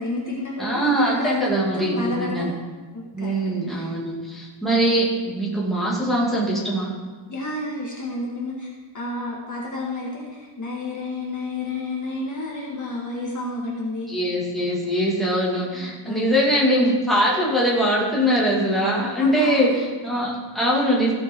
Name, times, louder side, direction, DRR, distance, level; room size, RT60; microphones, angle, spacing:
voice 1, 0.0-2.5 2.9-3.3 3.6-3.9 7.3-8.7 8.9-14.1 16.0-16.4 19.2-19.7, left 2 dB, 35° left, -3 dB, 1.7 m, -30 dB
voice 2, 0.6-2.5 3.1-6.9 14.1-21.1, equal, ahead, -5 dB, 2.3 m, -22 dB
15.0 x 5.3 x 4.5 m, 1.4 s
wide cardioid pair, 160°, 50 cm